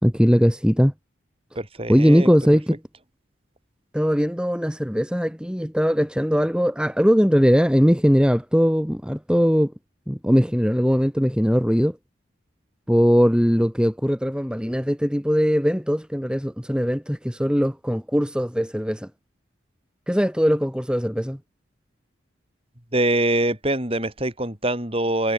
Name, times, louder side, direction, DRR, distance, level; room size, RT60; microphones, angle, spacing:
voice 1, 0.0-0.9 1.9-2.8 3.9-9.7 10.1-12.0 12.9-19.1 20.1-21.4, equal, 5° right, 4.0 m, -20 dB
voice 2, 1.6-2.3 22.9-25.3, right 1 dB, 30° right, 5.2 m, -24 dB
head